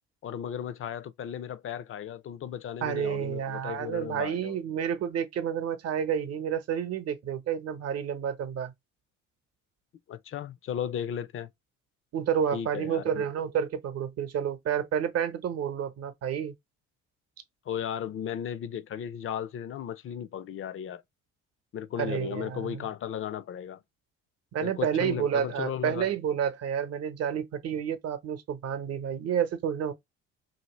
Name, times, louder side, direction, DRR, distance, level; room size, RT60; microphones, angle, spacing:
voice 1, 0.2-4.6 10.1-11.5 12.5-13.3 17.7-21.0 21.7-23.8 24.6-26.1, left 9 dB, 45° left, 0.5 m, -35 dB
voice 2, 2.8-8.7 12.1-16.5 22.0-22.9 24.5-29.9, right 8 dB, 55° right, 0.8 m, -30 dB
2.8 x 2.7 x 3.0 m
supercardioid pair, 70°, 31 cm